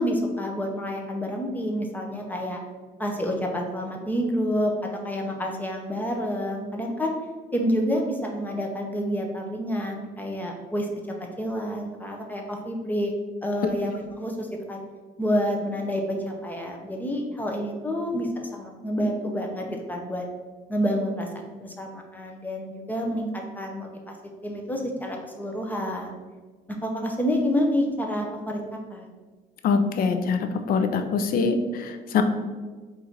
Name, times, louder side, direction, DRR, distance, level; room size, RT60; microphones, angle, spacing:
voice 1, 0.0-2.6 3.0-7.1 7.5-10.9 11.4-13.1 13.4-14.8 15.2-20.3 20.7-24.2 24.4-26.1 26.8-28.6 28.9-29.1, equal, 10° left, 1 dB, 0.6 m, -28 dB
voice 2, 29.6-32.2, left 5 dB, 60° left, 7 dB, 0.5 m, -24 dB
3.9 x 2.6 x 4.4 m, 1.4 s
cardioid pair, 110°, 17 cm